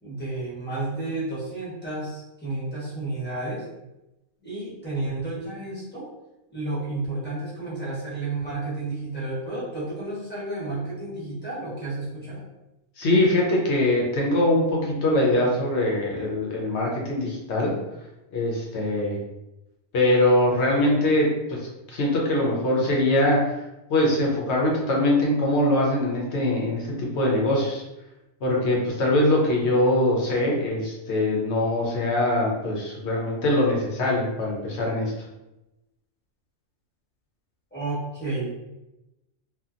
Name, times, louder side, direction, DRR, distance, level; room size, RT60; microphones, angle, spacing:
voice 1, 0.0-3.6 4.4-6.1 6.5-12.4 37.7-38.5, right 2 dB, 10° left, -8 dB, 0.9 m, -31 dB
voice 2, 13.0-17.7 18.3-19.2 19.9-21.6 21.9-23.5 23.9-27.8 28.4-35.1, left 1 dB, 70° left, -2 dB, 0.9 m, -22 dB
2.7 x 2.4 x 2.4 m, 0.96 s
omnidirectional pair, 1.3 m